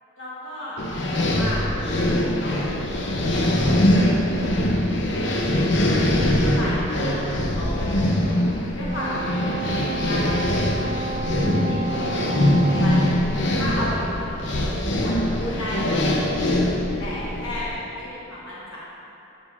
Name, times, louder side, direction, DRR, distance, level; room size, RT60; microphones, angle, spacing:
voice 1, 0.2-4.3 4.7-5.2 6.4-8.4 8.8-9.5 9.8-11.0 11.2-14.5 15.0-16.4 17.0-18.8, left 1 dB, 85° left, -8 dB, 1.1 m, -34 dB
sound 1, 0.8-17.7, left 1 dB, 65° left, 0.6 m, -22 dB
Brass instrument, 8.8-13.2, right 3 dB, 40° right, 0.5 m, -31 dB
8.8 x 6.7 x 2.4 m, 3.0 s
head